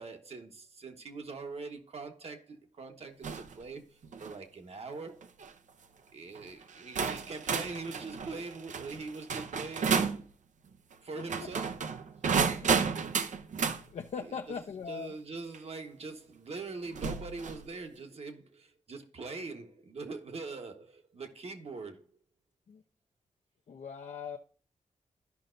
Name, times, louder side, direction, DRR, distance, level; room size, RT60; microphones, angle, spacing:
voice 1, 0.0-5.3 6.1-10.3 11.0-11.8 14.2-14.6 14.9-22.1, right 3 dB, 55° right, 1.3 m, -43 dB
sound 1, 3.2-3.5 4.0-4.4 5.2-5.5 6.3-6.4 7.0-10.2 11.2-13.8 15.5-15.6 16.9-17.6, right 6 dB, 75° right, 0.7 m, -32 dB
voice 2, 11.2-11.5 12.6-12.8 13.8-15.1 22.7-22.8 23.7-24.4, left 6 dB, 60° left, 0.6 m, -41 dB
13.5 x 5.4 x 2.6 m
cardioid pair, 90°, 13 cm